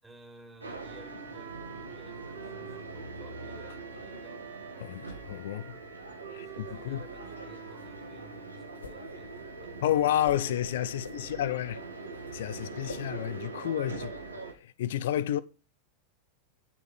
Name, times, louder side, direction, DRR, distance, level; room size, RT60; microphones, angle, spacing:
voice 1, 0.0-4.4 6.3-9.9 11.0-11.3 13.9-14.2, right 2 dB, 10° right, 4.0 m, -55 dB
sound 1, 0.6-14.5, right 3 dB, 80° right, 2.0 m, -42 dB
Wind instrument woodwind instrument, 0.8-9.0, right 7 dB, 50° right, 2.0 m, -49 dB
voice 2, 4.8-5.8 6.3-7.0 9.8-11.8 12.3-14.1 14.6-15.4, left 11 dB, 55° left, 0.7 m, -30 dB
sound 2, 6.6-13.4, left 4 dB, 75° left, 1.2 m, -49 dB
10.5 x 6.6 x 5.6 m
figure-of-eight pair, 90°, 0 cm